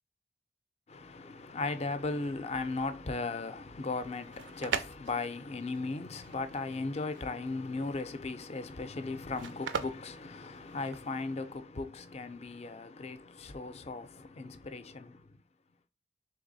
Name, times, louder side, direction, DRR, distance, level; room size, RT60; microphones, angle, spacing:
voice 1, 0.9-15.4, left 3 dB, 35° left, 0.4 m, -37 dB
sound 1, 4.1-11.2, right 6 dB, 80° right, 0.5 m, -40 dB
3.4 x 3.4 x 3.9 m
head